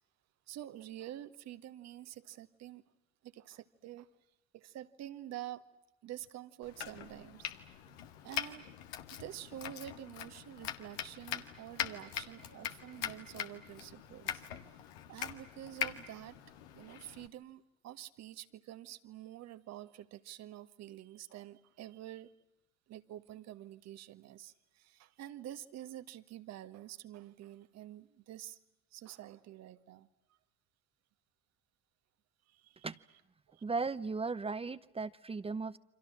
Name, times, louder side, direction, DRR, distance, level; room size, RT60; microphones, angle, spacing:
voice 1, 0.5-2.8 3.2-4.1 4.5-5.7 6.0-7.5 8.2-8.7 9.1-14.4 15.1-16.4 16.7-22.3 22.9-28.6 28.9-30.4 32.5-32.9 33.5-33.6, right 13 dB, 55° right, 1.7 m, -48 dB
Domestic sounds home sounds, 6.6-17.3, left 10 dB, 80° left, 1.9 m, -42 dB
voice 2, 33.6-35.8, right 4 dB, 20° right, 0.9 m, -36 dB
29.0 x 26.0 x 7.5 m
hypercardioid pair, 65°, 31 cm